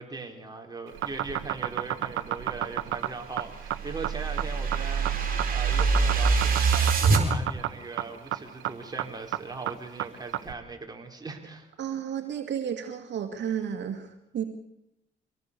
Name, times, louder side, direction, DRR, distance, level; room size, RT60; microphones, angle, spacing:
voice 1, 0.0-11.7, right 3 dB, 20° right, 3 dB, 4.3 m, -40 dB
sound 1, 0.9-10.5, right 13 dB, 85° right, 1.4 m, -31 dB
sound 2, 3.2-7.2, right 5 dB, 45° right, 4.6 m, -25 dB
voice 2, 11.8-14.4, right 8 dB, 65° right, 5 dB, 2.2 m, -32 dB
24.5 x 18.5 x 6.9 m, 0.85 s
cardioid pair, 90°, 20 cm